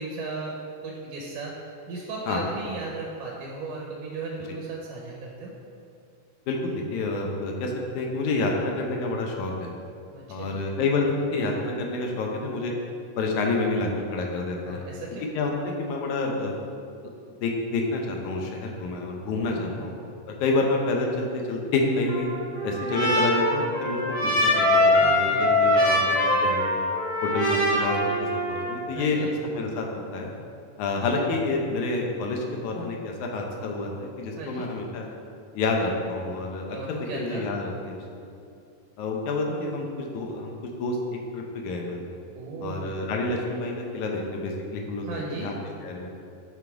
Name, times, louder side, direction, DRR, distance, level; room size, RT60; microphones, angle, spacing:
voice 1, 0.0-5.5 10.1-10.6 14.7-15.3 19.3-20.1 25.0-25.5 25.9-26.1 28.9-29.3 34.4-34.7 36.7-37.5 42.3-43.0 45.0-45.5, right 3 dB, 75° right, -2 dB, 2.2 m, -36 dB
voice 2, 6.5-9.7 10.3-12.8 13.2-14.8 15.3-16.6 17.3-19.9 20.3-22.3 22.6-26.7 27.2-29.3 29.5-30.3 30.8-35.1 35.5-38.3 39.0-42.2 42.6-45.6 45.8-46.1, left 3 dB, 75° left, 1 dB, 2.2 m, -28 dB
Trumpet, 22.1-28.8, left 1 dB, 35° left, 1.5 m, -23 dB
9.2 x 3.9 x 4.6 m, 2.4 s
omnidirectional pair, 3.7 m